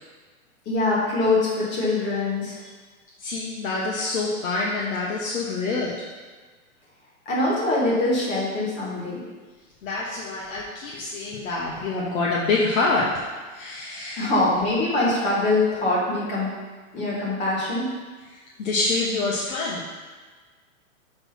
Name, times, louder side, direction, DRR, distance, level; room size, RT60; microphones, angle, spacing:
voice 1, 0.7-2.6 7.3-9.2 14.1-16.5 16.9-17.9, left 2 dB, 25° left, -6 dB, 1.9 m, -23 dB
voice 2, 3.2-5.9 9.8-13.3 13.5-14.3 18.6-19.9, left 3 dB, 65° left, -5 dB, 1.2 m, -26 dB
6.0 x 4.1 x 5.5 m, 1.4 s
hypercardioid pair, 165°, 44 cm